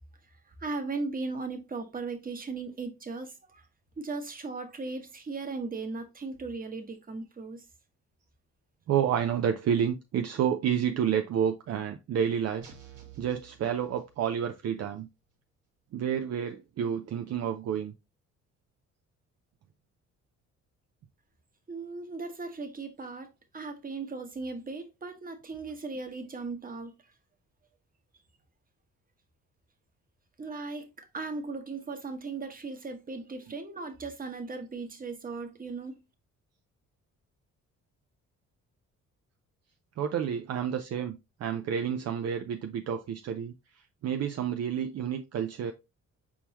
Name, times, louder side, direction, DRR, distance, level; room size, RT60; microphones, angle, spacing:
voice 1, 0.6-3.6 4.0-7.6 21.7-23.3 23.5-26.9 30.4-36.0, right 3 dB, 30° right, 1.1 m, -37 dB
voice 2, 8.9-12.7 13.2-15.1 15.9-17.9 33.5-33.6 40.0-45.7, right 8 dB, 55° right, 0.5 m, -30 dB
sound 1, 12.6-14.5, right 8 dB, 85° right, 1.4 m, -52 dB
4.4 x 3.7 x 2.9 m
cardioid pair, 90°, 30 cm